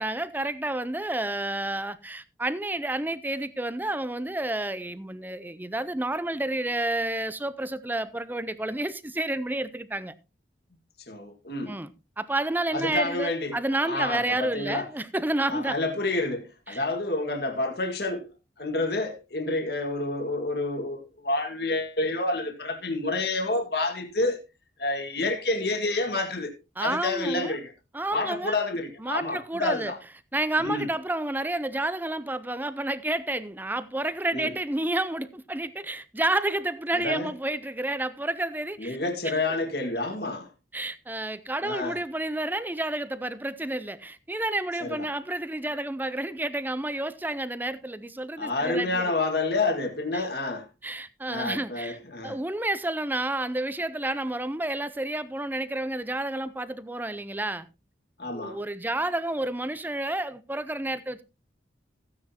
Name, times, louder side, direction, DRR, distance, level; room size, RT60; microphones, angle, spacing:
voice 1, 0.0-10.1 11.7-15.8 16.7-16.8 26.8-27.5 27.9-28.5 29.0-29.9 30.3-39.0 39.2-39.4 40.7-49.1 50.1-50.3 50.8-52.0 52.2-57.7 58.3-61.2, right 1 dB, 10° right, 0.6 m, -30 dB
voice 2, 11.1-11.8 12.7-14.9 15.5-18.3 18.6-24.4 24.8-26.5 26.8-27.7 28.1-30.0 30.6-30.9 34.3-34.5 36.9-37.3 38.8-40.5 41.6-42.0 44.8-45.1 48.4-50.7 51.3-52.4 58.2-58.6, left 2 dB, 60° left, 1.8 m, -29 dB
15.0 x 9.6 x 2.9 m
head